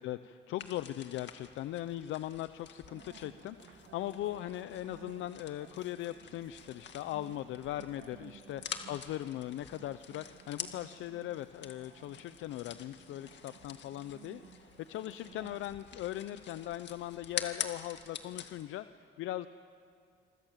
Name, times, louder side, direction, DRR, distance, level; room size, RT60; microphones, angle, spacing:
voice 1, 0.0-19.5, left 13 dB, 85° left, 13 dB, 0.6 m, -39 dB
sound 1, 0.6-18.6, left 8 dB, 65° left, 2.1 m, -47 dB
sound 2, 2.8-15.7, right 9 dB, 80° right, 1.5 m, -57 dB
26.5 x 25.0 x 7.5 m, 2.3 s
cardioid pair, 90°, 20 cm